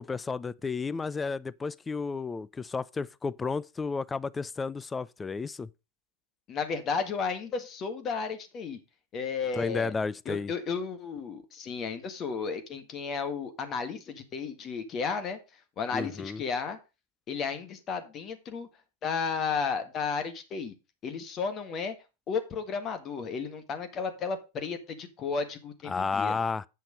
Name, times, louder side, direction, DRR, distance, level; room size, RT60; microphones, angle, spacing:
voice 1, 0.0-5.7 9.5-10.5 15.9-16.4 25.9-26.7, left 4 dB, 15° left, 0.4 m, -32 dB
voice 2, 6.5-8.8 9.1-9.9 10.2-15.4 15.8-16.8 17.3-18.7 19.0-20.7 21.0-21.9 22.3-26.3, left 5 dB, 30° left, 1.6 m, -33 dB
8.3 x 5.9 x 5.1 m
figure-of-eight pair, 90°, 0 cm